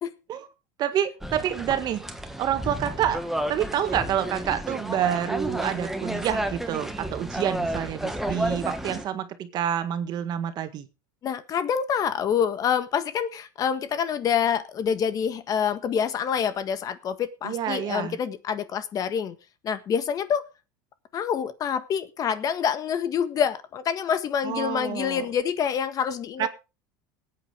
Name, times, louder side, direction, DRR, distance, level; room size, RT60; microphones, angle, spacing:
voice 1, 0.8-2.0 2.4-3.2 3.5-10.9 17.4-18.2 24.4-25.3 26.4-26.5, right 10 dB, 45° right, 9 dB, 1.9 m, -28 dB
sound 1, 1.2-9.1, right 1 dB, 5° right, 1.7 m, -31 dB
voice 2, 11.2-19.3 19.6-20.4 21.1-26.5, left 8 dB, 35° left, 11 dB, 1.6 m, -26 dB
19.5 x 8.9 x 3.5 m, 0.30 s
supercardioid pair, 120°, 10 cm